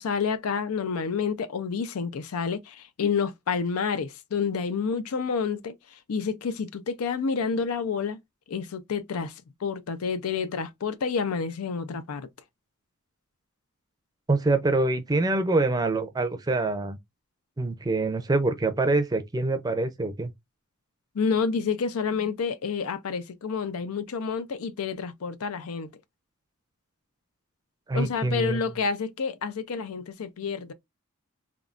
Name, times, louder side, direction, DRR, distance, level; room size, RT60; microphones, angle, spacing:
voice 1, 0.0-5.7 6.1-8.2 8.5-9.3 9.6-12.3 21.1-25.9 27.9-30.7, left 5 dB, 85° left, 0.5 m, -29 dB
voice 2, 14.3-17.0 17.6-20.3 27.9-28.6, right 2 dB, 20° right, 0.5 m, -25 dB
3.6 x 2.3 x 2.4 m
head